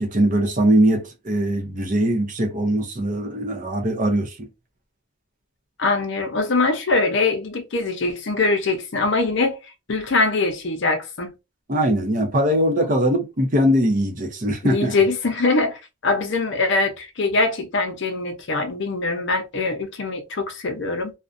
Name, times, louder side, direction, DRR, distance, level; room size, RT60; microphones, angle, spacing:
voice 1, 0.0-4.5 11.7-14.9, right 1 dB, 35° right, 0.6 m, -21 dB
voice 2, 5.8-9.6 9.9-11.3 14.6-21.1, left 3 dB, 55° left, 0.6 m, -22 dB
2.5 x 2.1 x 2.4 m
head